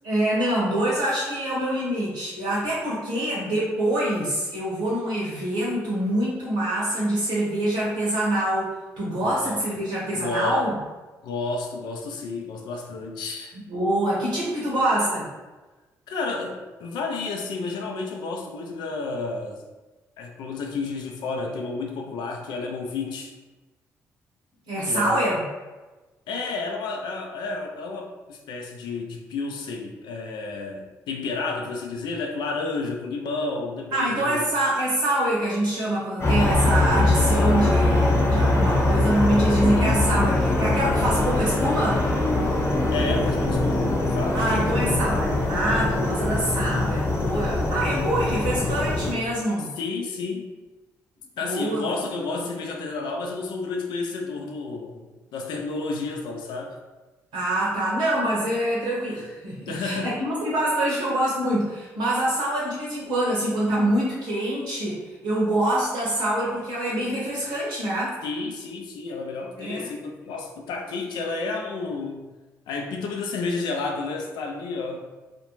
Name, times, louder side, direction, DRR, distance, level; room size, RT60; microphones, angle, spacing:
voice 1, 0.0-10.8 13.7-15.3 24.7-25.5 33.9-42.0 44.3-49.7 51.4-51.9 57.3-68.2 69.6-69.9, right 1 dB, 80° right, -6 dB, 0.7 m, -25 dB
voice 2, 9.2-9.7 10.1-10.7 11.2-13.6 16.1-19.6 20.2-23.3 24.9-25.3 26.3-34.5 42.9-44.4 49.8-50.5 51.4-56.8 59.7-60.1 68.2-72.2 72.7-75.1, left 3 dB, 70° left, 2 dB, 0.4 m, -31 dB
sound 1, 36.2-49.1, left 2 dB, 35° left, 0.8 m, -22 dB
2.4 x 2.1 x 3.0 m, 1.2 s
hypercardioid pair, 50°, 8 cm